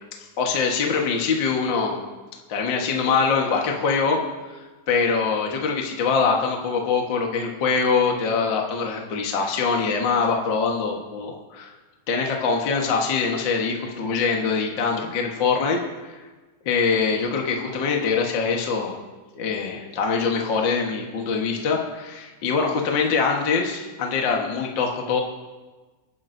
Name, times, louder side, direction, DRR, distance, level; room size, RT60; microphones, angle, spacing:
voice 1, 0.4-2.0 2.5-4.2 4.5-4.6 4.9-11.7 12.1-16.2 16.7-19.0 19.3-25.2, left 5 dB, 45° left, 1 dB, 1.6 m, -23 dB
30.0 x 10.5 x 2.7 m, 1.3 s
omnidirectional pair, 3.6 m